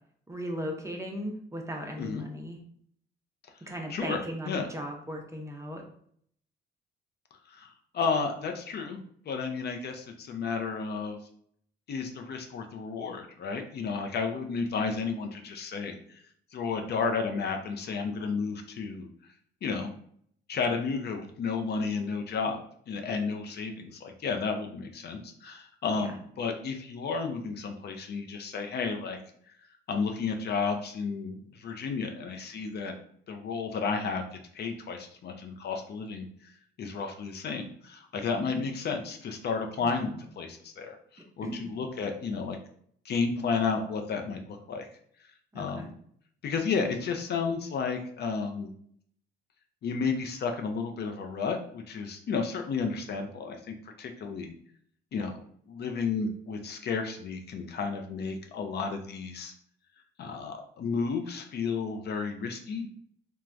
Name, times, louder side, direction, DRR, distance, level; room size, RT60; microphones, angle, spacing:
voice 1, 0.3-2.6 3.6-5.8 26.0-26.1 38.5-38.6 39.8-40.2 41.4-41.8 45.5-45.9, equal, 15° right, 2 dB, 0.6 m, -37 dB
voice 2, 3.9-4.7 7.5-11.2 11.9-16.2 16.5-19.1 19.6-19.9 20.5-29.2 29.5-29.6 29.9-32.9 33.3-42.6 43.0-44.9 45.2-45.9 46.4-48.7 49.8-54.5 55.1-55.4 55.7-59.5 60.2-62.9, left 5 dB, 55° left, 4 dB, 0.5 m, -32 dB
3.2 x 2.2 x 2.4 m, 0.63 s
cardioid pair, 90°, 20 cm